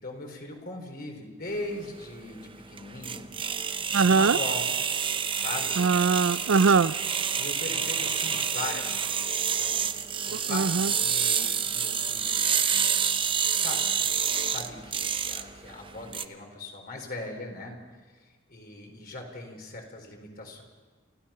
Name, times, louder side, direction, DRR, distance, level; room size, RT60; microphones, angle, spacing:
voice 1, 0.0-2.4 2.7-3.3 4.0-4.7 5.3-5.8 7.3-9.2 9.6-9.8 10.3-12.4 12.7-12.8 13.5-17.8 18.5-20.6, left 2 dB, 50° left, 2 dB, 4.2 m, -39 dB
sound 1, 1.5-16.2, right 7 dB, 25° right, 0.7 m, -28 dB
voice 2, 3.9-4.4 5.8-6.9 10.5-10.9, right 5 dB, 70° right, 18 dB, 0.5 m, -21 dB
28.0 x 16.0 x 5.8 m, 1.3 s
head